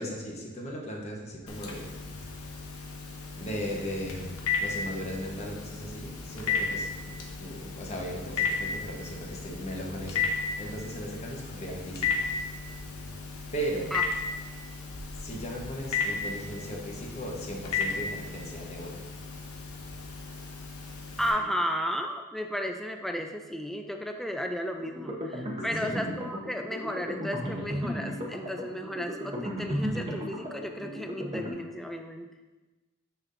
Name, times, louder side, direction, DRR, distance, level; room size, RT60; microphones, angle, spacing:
voice 1, 0.0-1.9 3.4-12.3 13.5-13.9 15.2-19.0 25.8-26.1, equal, 30° left, -1 dB, 1.0 m, -37 dB
Telephone, 1.5-21.3, left 4 dB, 75° left, 1.0 m, -34 dB
voice 2, 21.2-32.3, equal, ahead, 4 dB, 0.3 m, -34 dB
sound 1, 24.8-31.5, equal, 25° right, 0.8 m, -35 dB
6.6 x 6.0 x 2.6 m, 1.2 s
head